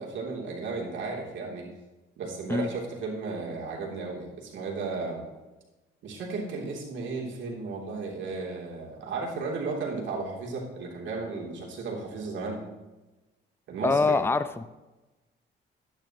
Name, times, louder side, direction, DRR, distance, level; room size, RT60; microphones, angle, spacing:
voice 1, 0.0-1.7 2.2-5.2 6.0-12.6 13.7-14.2, right 3 dB, 70° right, -2 dB, 3.3 m, -34 dB
voice 2, 13.8-14.7, left 3 dB, 10° left, 12 dB, 0.5 m, -24 dB
12.5 x 10.5 x 3.1 m, 1.1 s
cardioid pair, 90°, 20 cm